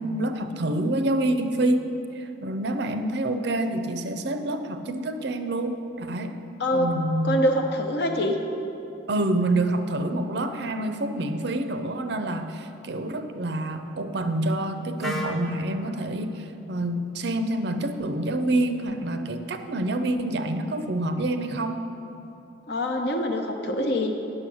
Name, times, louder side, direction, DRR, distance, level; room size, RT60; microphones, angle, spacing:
voice 1, 0.0-1.9 2.1-6.4 6.7-7.4 9.1-21.8, right 1 dB, 55° right, 8 dB, 0.5 m, -27 dB
voice 2, 7.2-8.4 22.7-24.3, equal, 55° left, 3 dB, 0.8 m, -25 dB
Wind instrument woodwind instrument, 15.0-18.9, equal, ahead, 0.6 m, -39 dB
9.2 x 6.5 x 6.2 m, 3.0 s
head